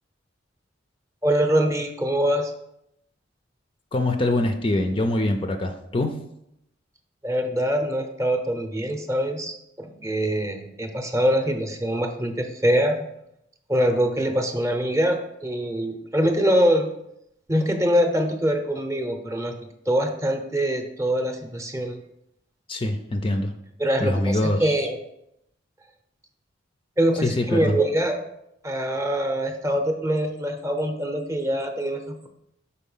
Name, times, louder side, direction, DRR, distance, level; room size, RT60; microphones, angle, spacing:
voice 1, 1.2-2.5 7.2-13.1 13.7-16.9 17.5-19.5 19.9-22.0 23.8-25.0 27.0-28.2 28.6-32.3, equal, 15° right, 4 dB, 0.7 m, -24 dB
voice 2, 3.9-6.2 22.7-23.5 24.0-24.7 27.2-27.8, left 1 dB, 30° left, 5 dB, 0.4 m, -24 dB
5.4 x 4.2 x 5.5 m, 0.80 s
head